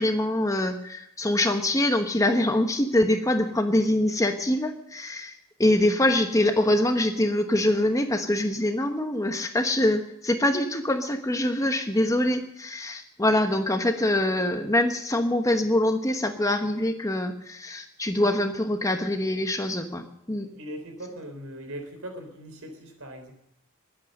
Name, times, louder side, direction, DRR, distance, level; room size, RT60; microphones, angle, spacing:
voice 1, 0.0-20.5, left 1 dB, 15° left, 6 dB, 1.0 m, -24 dB
voice 2, 20.3-23.3, equal, 70° right, 5 dB, 3.7 m, -40 dB
21.5 x 8.7 x 6.6 m, 0.79 s
head